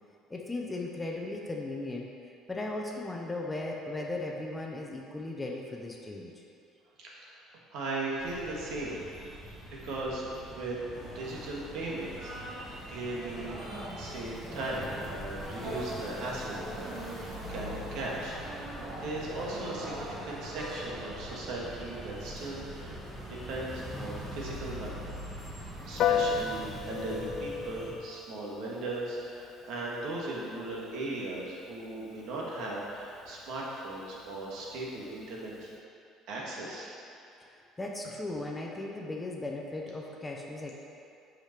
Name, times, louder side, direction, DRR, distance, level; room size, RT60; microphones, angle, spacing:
voice 1, 0.3-2.1 2.5-6.3 37.4-37.5 37.8-40.7, left 2 dB, 15° left, 0 dB, 0.7 m, -37 dB
voice 2, 7.7-9.0 9.8-10.8 11.0-13.6 14.0-18.7 19.0-23.0 23.3-25.0 25.9-35.7 36.3-36.9, right 2 dB, 65° right, -4 dB, 1.7 m, -38 dB
sound 1, 8.2-27.9, equal, 5° right, 1.4 m, -44 dB
sound 2, 10.9-27.4, right 1 dB, 45° right, 1.6 m, -44 dB
Piano, 26.0-35.7, left 7 dB, 55° left, 0.3 m, -37 dB
6.0 x 5.1 x 5.9 m, 2.6 s
cardioid pair, 135°, 0 cm